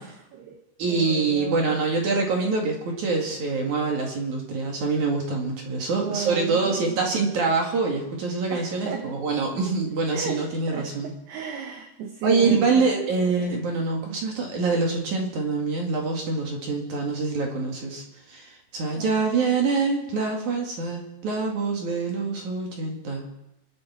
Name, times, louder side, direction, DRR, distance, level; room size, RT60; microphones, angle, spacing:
voice 1, 0.0-0.6 0.9-1.8 6.0-7.0 8.5-9.2 9.6-9.8 10.1-12.9 19.0-19.2, right 8 dB, 70° right, 4 dB, 2.7 m, -34 dB
voice 2, 0.8-11.1 12.2-23.3, right 4 dB, 50° right, 1 dB, 2.7 m, -25 dB
28.0 x 10.5 x 4.5 m, 0.87 s
omnidirectional pair, 5.8 m